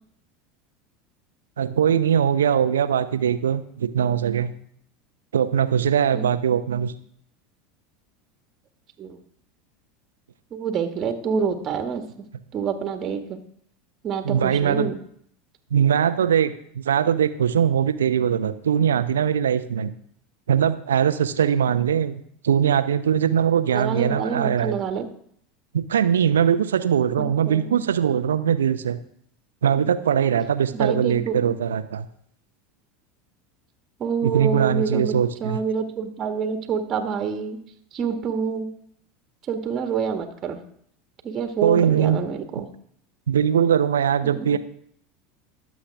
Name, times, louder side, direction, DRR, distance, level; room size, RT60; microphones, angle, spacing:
voice 1, 1.6-4.5 5.3-6.9 14.2-14.9 15.7-19.9 20.5-24.8 25.7-29.0 29.6-32.1 34.2-35.6 41.6-42.2 43.3-44.6, right 8 dB, 75° right, 12 dB, 0.8 m, -21 dB
voice 2, 10.5-12.0 12.5-13.4 14.0-15.0 23.7-25.1 27.5-27.8 30.7-31.5 34.0-35.1 35.4-37.6 37.9-38.7 39.5-40.6 41.2-42.7 44.2-44.6, right 6 dB, 35° right, 6 dB, 1.8 m, -27 dB
22.5 x 7.5 x 3.6 m, 0.64 s
figure-of-eight pair, 75°, 0 cm